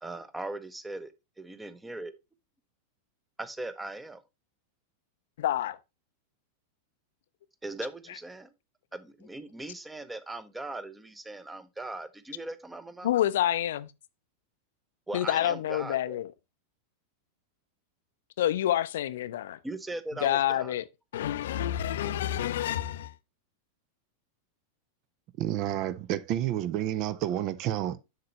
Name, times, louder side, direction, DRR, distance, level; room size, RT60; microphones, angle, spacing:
voice 1, 0.0-2.1 3.4-4.2 7.6-8.5 8.9-13.1 15.1-16.2 19.6-20.8, right 2 dB, 10° right, 0.9 m, -39 dB
voice 2, 5.4-5.8 13.0-13.9 15.1-16.3 18.4-19.6 20.2-20.8 21.1-23.1, left 12 dB, 60° left, 0.5 m, -28 dB
voice 3, 25.4-28.0, right 12 dB, 40° right, 0.6 m, -30 dB
7.7 x 6.7 x 3.0 m
figure-of-eight pair, 90°, 0 cm